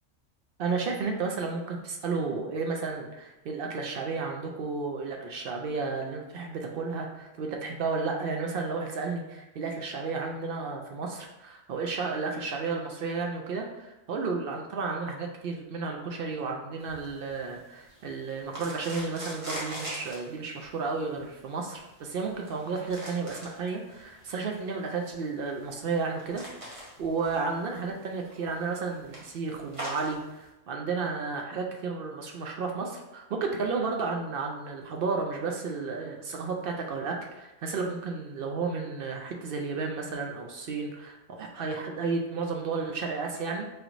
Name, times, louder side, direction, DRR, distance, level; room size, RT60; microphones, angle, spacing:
voice 1, 0.6-26.4 26.7-43.7, right 4 dB, 65° right, 2 dB, 0.6 m, -32 dB
sound 1, 16.8-30.5, equal, 25° right, 1.0 m, -44 dB
4.9 x 3.0 x 2.5 m, 0.99 s
omnidirectional pair, 1.4 m